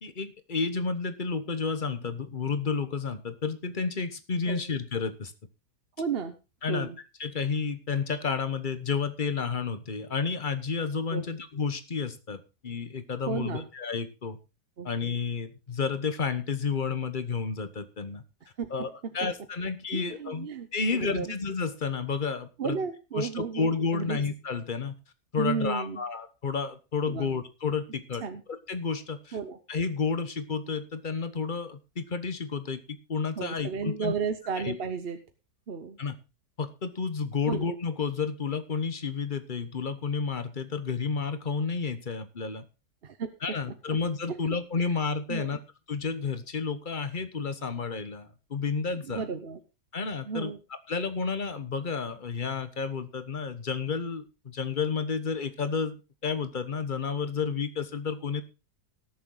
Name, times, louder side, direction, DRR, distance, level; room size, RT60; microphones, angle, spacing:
voice 1, 0.0-5.3 6.6-6.9 7.2-14.4 14.8-18.2 18.7-20.5 20.7-22.8 23.1-24.9 25.3-28.2 28.7-29.4 29.7-32.8 33.1-34.1 34.6-34.8 36.0-36.2 36.6-42.6 43.4-45.6 45.9-49.3 49.9-50.5 50.9-56.0 56.2-58.4, left 5 dB, 35° left, 11 dB, 1.1 m, -31 dB
voice 2, 6.0-6.3 6.7-7.0 11.1-11.2 13.3-13.7 14.8-14.9 18.6-18.9 19.9-21.3 22.6-24.2 25.4-26.0 27.1-27.3 28.2-28.4 29.3-29.6 33.4-35.2 35.7-36.0 37.5-37.7 43.0-43.6 43.9-44.0 44.3-44.4 44.7-44.8 45.3-45.5 49.0-49.6 50.2-50.6, right 5 dB, 45° right, 9 dB, 0.9 m, -33 dB
18.5 x 7.0 x 3.9 m, 0.29 s
omnidirectional pair, 1.8 m